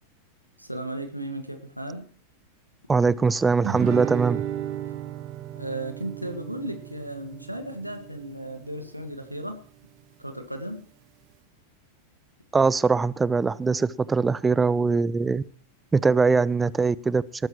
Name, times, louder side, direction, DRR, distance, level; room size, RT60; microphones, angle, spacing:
voice 1, 0.6-2.1 5.6-9.6 10.2-10.8, right 1 dB, 90° right, 1.9 m, -35 dB
voice 2, 2.9-4.4 12.5-15.4 15.9-17.2, right 4 dB, 15° right, 0.6 m, -22 dB
Guitar, 3.6-8.7, right 12 dB, 40° right, 1.5 m, -34 dB
19.0 x 13.5 x 3.1 m
figure-of-eight pair, 90°, 0 cm